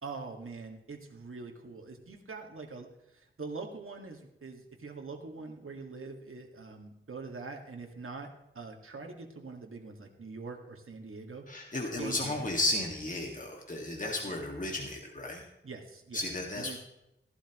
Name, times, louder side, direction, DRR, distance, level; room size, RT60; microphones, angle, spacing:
voice 1, 0.0-2.9 3.1-11.4 12.0-12.5 14.2-14.3 15.6-16.2 16.6-16.8, right 4 dB, 80° right, 2 dB, 1.9 m, -43 dB
voice 2, 11.5-15.4 16.1-16.8, left 2 dB, 40° left, 0 dB, 1.9 m, -34 dB
16.5 x 11.5 x 3.0 m, 0.89 s
wide cardioid pair, 75°, 21 cm